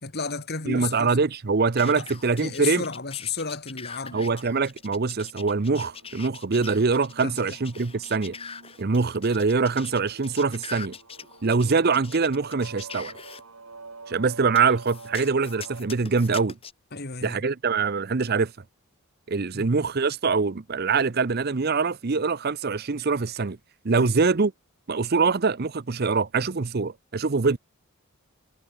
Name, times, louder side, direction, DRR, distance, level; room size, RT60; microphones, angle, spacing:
voice 1, 0.0-1.1 2.0-2.1 2.4-4.2 7.2-7.3 16.9-17.4 19.5-19.7 24.0-24.2, left 5 dB, 45° left, 2.3 m, -33 dB
voice 2, 0.7-2.8 4.1-8.4 8.8-10.9 11.4-13.1 14.1-16.6 17.2-18.5 19.3-23.6 23.8-24.5 24.9-27.6, right 4 dB, 45° right, 0.6 m, -24 dB
sound 1, 1.8-13.4 14.5-16.7, left 6 dB, 25° left, 3.3 m, -42 dB
sound 2, 5.5-15.8, right 3 dB, 80° right, 2.1 m, -47 dB
head